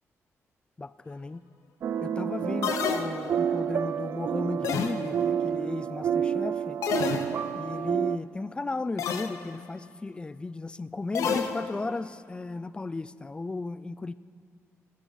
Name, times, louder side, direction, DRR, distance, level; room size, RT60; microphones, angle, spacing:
voice 1, 0.8-1.4 2.0-6.8 7.5-14.1, left 3 dB, 20° left, 16 dB, 0.3 m, -35 dB
sound 1, 1.8-8.2, right 8 dB, 60° right, 0.3 m, -29 dB
sound 2, 2.6-3.6 4.6-5.4 6.8-7.7 9.0-9.5 11.1-12.0, left 7 dB, 90° left, 0.7 m, -30 dB
17.0 x 10.0 x 4.0 m, 2.2 s
cardioid pair, 110°, 5 cm